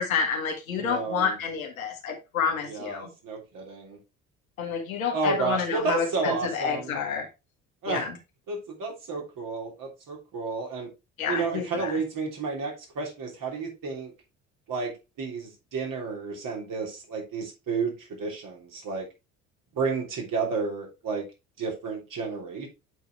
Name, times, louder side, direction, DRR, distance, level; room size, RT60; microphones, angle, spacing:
voice 1, 0.0-3.1 4.6-7.3 7.9-8.2 11.2-11.9, left 6 dB, 85° left, 1.6 m, -29 dB
voice 2, 0.8-1.4 2.7-4.0 5.1-7.0 7.8-8.1 8.5-10.9 11.3-14.1 14.7-14.9 15.2-19.1 19.7-21.2 21.6-22.7, right 4 dB, 50° right, 3.3 m, -31 dB
8.0 x 4.8 x 3.5 m
hypercardioid pair, 60°, 41 cm